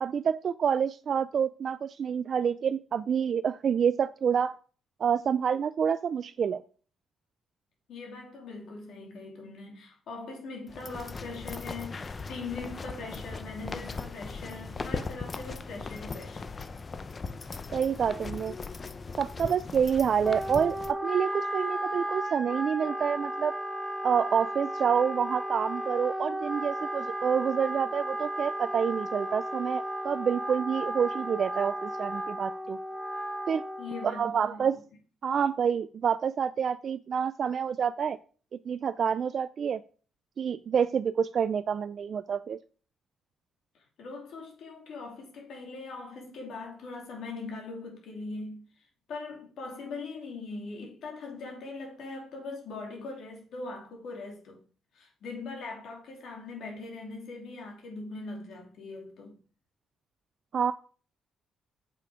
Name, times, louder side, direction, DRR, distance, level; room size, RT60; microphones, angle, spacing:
voice 1, 0.0-4.6 5.0-6.6 17.7-18.6 19.2-23.6 24.0-32.8 33.5-33.6 34.1-34.8 35.2-38.2 38.7-39.8 40.4-42.6 60.5-60.7, right 7 dB, 55° right, 0.3 m, -28 dB
voice 2, 7.9-16.6 33.8-34.8 44.0-54.6 54.9-59.4, left 3 dB, 70° left, 2.8 m, -41 dB
sound 1, 10.7-20.9, left 4 dB, 35° left, 0.6 m, -39 dB
Wind instrument woodwind instrument, 20.2-34.3, right 1 dB, 10° right, 1.1 m, -34 dB
6.7 x 5.7 x 4.9 m
cardioid pair, 90°, 0 cm